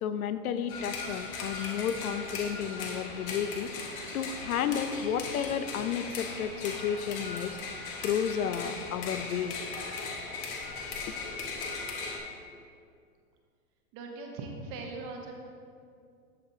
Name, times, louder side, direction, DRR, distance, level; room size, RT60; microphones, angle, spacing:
voice 1, 0.0-7.6 8.0-9.6 11.1-11.2, left 8 dB, 70° left, 11 dB, 0.6 m, -32 dB
sound 1, 0.7-12.2, left 3 dB, 40° left, 1.1 m, -38 dB
voice 2, 13.9-15.4, right 3 dB, 30° right, 1 dB, 0.9 m, -40 dB
13.5 x 5.0 x 2.7 m, 2.3 s
hypercardioid pair, 140°, 45 cm